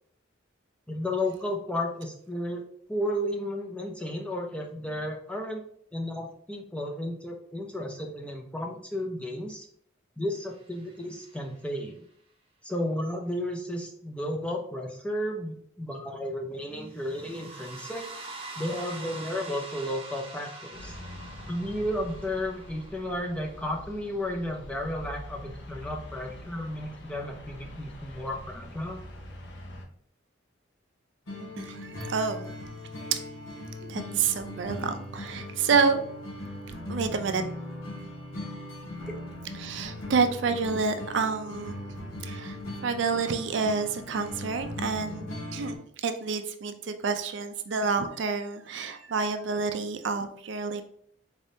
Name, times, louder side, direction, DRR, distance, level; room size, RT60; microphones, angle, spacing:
voice 1, 0.9-2.6 2.9-5.6 5.9-9.7 10.2-12.0 12.6-18.1 18.6-20.9 21.5-29.0 39.1-39.2, left 1 dB, 5° left, 1 dB, 0.4 m, -33 dB
sound 1, 10.5-11.6 16.8-23.6, right 3 dB, 30° right, 0.7 m, -44 dB
sound 2, 20.7-29.8, left 1 dB, 60° left, 0.7 m, -44 dB
sound 3, 31.3-45.8, left 1 dB, 85° left, 1.3 m, -39 dB
voice 2, 31.6-32.5 33.1-33.2 33.9-36.0 36.9-37.4 39.6-42.0 42.2-50.8, right 5 dB, 65° right, 8 dB, 0.4 m, -28 dB
4.0 x 3.4 x 2.7 m, 0.64 s
head